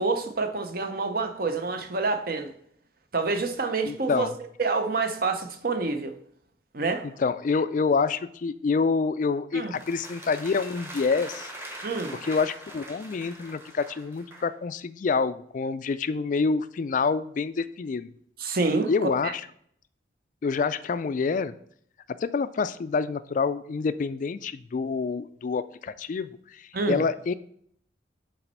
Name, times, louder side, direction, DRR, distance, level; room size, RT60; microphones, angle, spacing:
voice 1, 0.0-2.5 3.1-4.3 4.6-6.1 6.7-7.1 9.5-9.7 11.8-12.2 18.4-18.9 19.2-19.3 26.7-27.0, right 3 dB, 50° right, 0.7 m, -27 dB
voice 2, 3.9-4.3 7.2-11.5 12.2-18.1 18.9-19.4 20.4-21.5 22.2-27.3, left 4 dB, 45° left, 0.3 m, -27 dB
sound 1, 9.7-14.6, right 1 dB, 15° right, 0.9 m, -42 dB
5.8 x 4.2 x 5.4 m
head